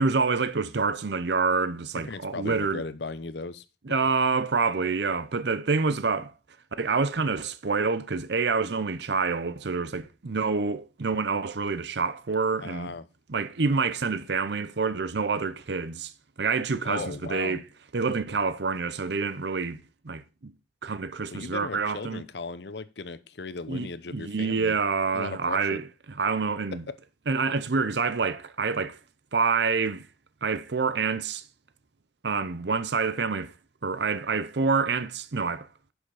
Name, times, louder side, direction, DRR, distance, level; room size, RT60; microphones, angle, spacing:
voice 1, 0.0-2.8 3.9-6.3 6.8-12.9 13.3-16.1 16.4-17.6 17.9-19.8 20.0-20.5 20.8-22.2 23.7-25.9 26.2-26.8 27.3-29.0 29.3-30.0 30.4-31.4 32.2-33.5 33.8-35.7, right 4 dB, 65° right, 0.7 m, -27 dB
voice 2, 2.0-3.6 4.0-4.1 12.6-13.1 16.8-17.6 21.3-24.8 25.1-25.8 26.7-27.0, left 3 dB, 65° left, 0.8 m, -37 dB
10.0 x 6.3 x 4.9 m
head